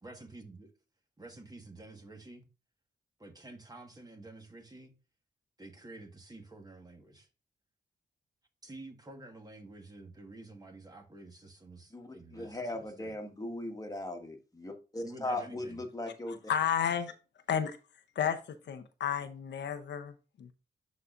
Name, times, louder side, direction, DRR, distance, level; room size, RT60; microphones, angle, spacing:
voice 1, 0.0-0.7 1.2-2.4 3.2-4.9 5.6-7.3 8.6-13.2 15.0-15.8, right 2 dB, 20° right, 1.5 m, -50 dB
voice 2, 11.9-16.4, left 1 dB, 20° left, 1.5 m, -38 dB
voice 3, 16.5-17.1 17.5-17.8 18.2-18.4 18.7-20.5, left 8 dB, 80° left, 0.7 m, -32 dB
11.0 x 4.2 x 2.5 m
cardioid pair, 85°, 18 cm